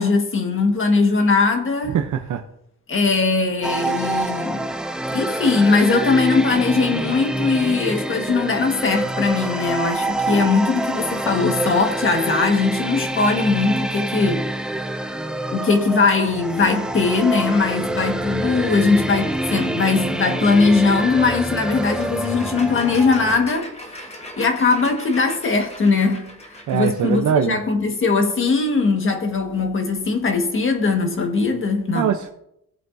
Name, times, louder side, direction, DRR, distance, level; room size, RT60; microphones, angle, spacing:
voice 1, 0.0-2.0 2.9-4.7 5.1-14.4 15.5-23.7 24.4-32.1, left 4 dB, 35° left, 1.6 m, -20 dB
voice 2, 1.9-2.4 26.7-27.6 31.9-32.3, right 8 dB, 60° right, 0.7 m, -22 dB
sound 1, 3.6-23.4, right 1 dB, ahead, 0.4 m, -26 dB
sound 2, 21.8-27.5, equal, 20° left, 1.3 m, -39 dB
16.5 x 7.9 x 2.7 m
cardioid pair, 140°, 35 cm